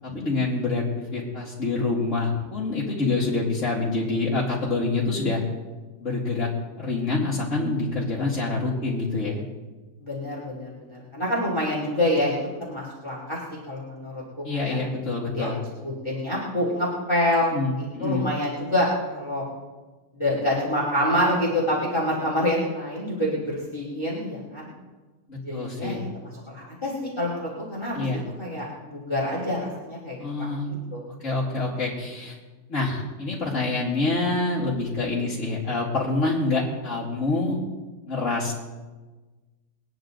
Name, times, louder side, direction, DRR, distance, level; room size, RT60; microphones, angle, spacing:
voice 1, 0.0-5.4 6.0-6.5 6.8-9.4 14.4-15.6 17.5-18.3 25.3-26.0 27.9-28.2 30.2-30.7 31.2-32.4 32.7-37.6 38.1-38.5, left 3 dB, 45° left, -8 dB, 2.8 m, -26 dB
voice 2, 10.0-12.4 12.7-14.8 15.3-19.5 20.1-24.7 25.4-28.0 28.4-30.5 30.9-31.0, left 1 dB, 15° left, -5 dB, 2.9 m, -27 dB
22.0 x 10.0 x 3.9 m, 1.2 s
omnidirectional pair, 1.8 m